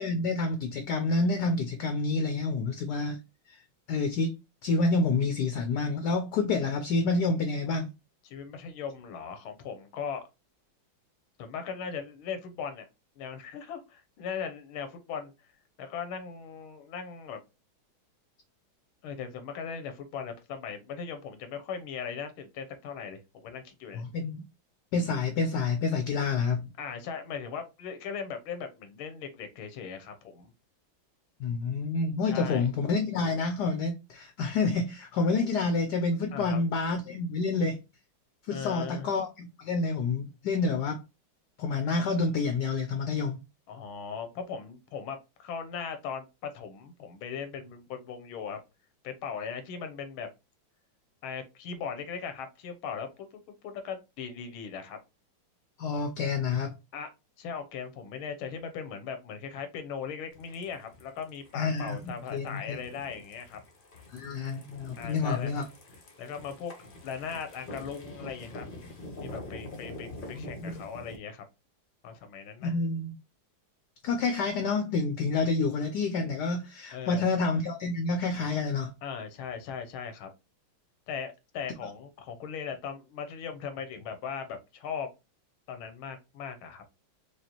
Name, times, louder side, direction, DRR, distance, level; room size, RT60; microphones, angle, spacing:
voice 1, 0.0-3.2 3.5-3.6 3.9-4.4 4.6-7.9 24.0-24.4 24.9-26.7 31.4-37.8 38.5-41.0 41.6-43.4 55.8-56.7 61.5-62.0 62.3-62.8 64.1-65.6 70.3-70.7 72.6-73.1 74.0-78.9, left 3 dB, 70° left, 1.0 m, -28 dB
voice 2, 8.2-10.2 11.4-12.9 13.2-15.3 15.8-17.4 19.0-24.0 26.8-30.5 32.2-32.7 36.3-36.6 38.5-39.1 43.7-48.6 49.0-50.3 51.2-55.0 56.9-57.1 57.4-63.6 65.0-65.6 66.2-66.7 67.0-68.7 69.2-71.5 72.0-72.7 76.9-77.3 79.0-80.3 81.1-85.1 85.7-86.8, left 6 dB, 90° left, 1.6 m, -38 dB
sound 1, 60.3-71.2, left 1 dB, 45° left, 0.7 m, -46 dB
4.9 x 2.4 x 2.9 m
omnidirectional pair, 2.2 m